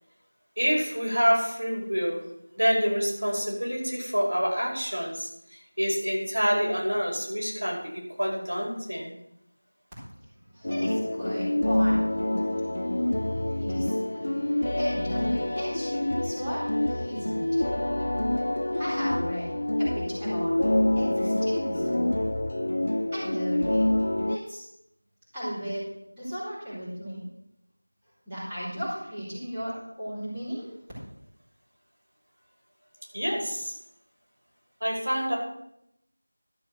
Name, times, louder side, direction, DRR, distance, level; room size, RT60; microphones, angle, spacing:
voice 1, 0.6-2.3 2.6-9.1 33.1-33.8 34.8-35.4, equal, 85° right, -2 dB, 5.2 m, -27 dB
voice 2, 10.5-12.1 13.6-14.0 14.8-15.9 16.2-17.4 18.0-18.2 18.7-20.5 20.9-22.1 23.1-23.9 24.3-24.6 25.3-25.9 26.1-27.2 28.3-30.7, equal, 10° right, -13 dB, 4.5 m, -35 dB
sound 1, 10.6-24.4, left 1 dB, 55° left, 0.4 m, -27 dB
12.5 x 6.5 x 6.4 m, 0.81 s
figure-of-eight pair, 175°, 0 cm